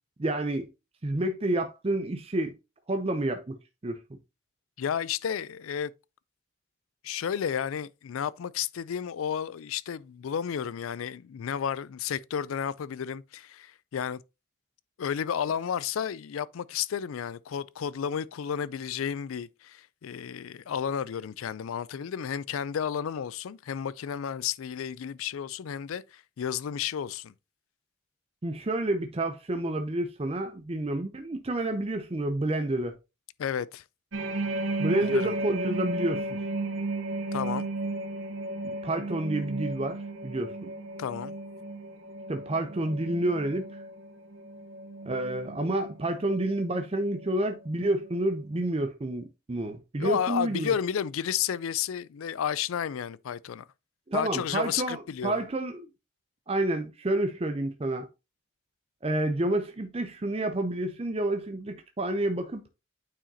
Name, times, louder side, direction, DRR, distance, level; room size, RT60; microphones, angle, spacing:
voice 1, 0.2-0.7 1.0-2.5 2.9-3.6 3.8-4.0 28.4-33.0 34.8-36.4 38.6-40.7 42.3-43.7 45.1-50.7 54.1-55.9 56.5-58.1 59.0-62.6, right 1 dB, 30° right, 0.5 m, -29 dB
voice 2, 4.8-5.9 7.0-14.2 15.0-27.3 33.4-33.8 35.0-35.3 37.3-37.7 41.0-41.4 50.0-53.6 54.1-55.4, left 8 dB, 75° left, 0.4 m, -32 dB
sound 1, 34.1-47.6 48.0-48.3, right 2 dB, 65° right, 1.0 m, -35 dB
8.8 x 4.8 x 2.7 m
head